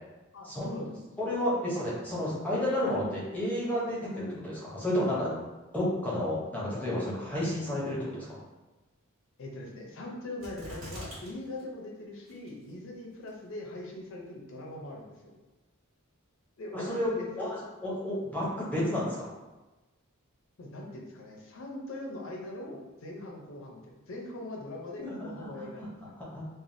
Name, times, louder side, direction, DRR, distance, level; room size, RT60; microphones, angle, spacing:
voice 1, 0.3-1.0 9.4-15.4 16.6-17.3 20.6-23.8 24.1-26.0, left 1 dB, 65° left, 0 dB, 0.6 m, -41 dB
voice 2, 1.2-5.3 5.7-8.4 16.7-17.1 17.4-19.3 25.0-25.9 26.2-26.4, left 1 dB, 5° left, -7 dB, 0.6 m, -31 dB
sound 1, 10.4-11.3 11.6-11.7 12.3-12.7 13.3-13.4, equal, 80° right, 1.3 m, -43 dB
3.3 x 2.2 x 2.6 m, 1.1 s
head